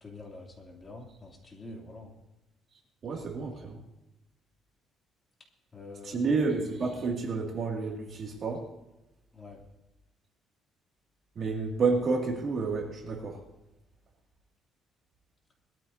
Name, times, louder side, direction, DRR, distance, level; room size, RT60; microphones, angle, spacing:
voice 1, 0.0-2.1 5.7-6.3 9.3-9.6, left 2 dB, 25° left, 0 dB, 2.8 m, -46 dB
voice 2, 3.0-3.8 6.0-8.7 11.4-13.4, right 4 dB, 40° right, 1 dB, 2.3 m, -30 dB
21.5 x 13.5 x 2.7 m, 0.99 s
cardioid pair, 140°, 0 cm